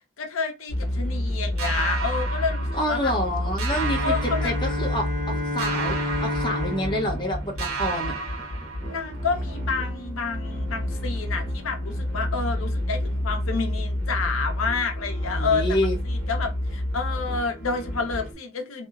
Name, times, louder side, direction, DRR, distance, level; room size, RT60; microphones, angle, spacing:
voice 1, 0.2-3.1 4.0-4.5 8.8-15.8 16.0-18.9, left 4 dB, 85° left, 0.7 m, -29 dB
sound 1, 0.7-18.3, left 1 dB, 55° right, 1.0 m, -29 dB
sound 2, 1.6-3.3 3.6-5.2 5.6-7.3 7.6-9.3, right 5 dB, 85° right, 0.6 m, -33 dB
voice 2, 2.7-8.1 15.3-16.0, equal, 25° left, 0.6 m, -28 dB
Bowed string instrument, 3.7-8.5, left 1 dB, 35° right, 0.6 m, -31 dB
2.8 x 2.1 x 2.3 m
head